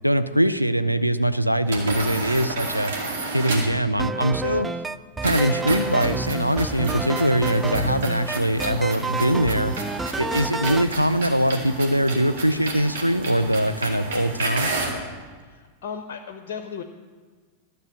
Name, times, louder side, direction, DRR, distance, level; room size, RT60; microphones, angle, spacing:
voice 1, 0.0-2.9 3.3-4.7 5.2-9.7 10.2-14.7, equal, 90° right, 10 dB, 0.4 m, -22 dB
sound 1, 1.6-3.8 5.2-15.0, right 3 dB, 60° right, 2.2 m, -31 dB
sound 2, 4.0-10.9, right 3 dB, 10° right, 0.3 m, -29 dB
voice 2, 15.4-16.8, left 6 dB, 50° left, 7 dB, 0.7 m, -35 dB
12.5 x 6.7 x 6.4 m, 1.5 s
figure-of-eight pair, 90°, 0 cm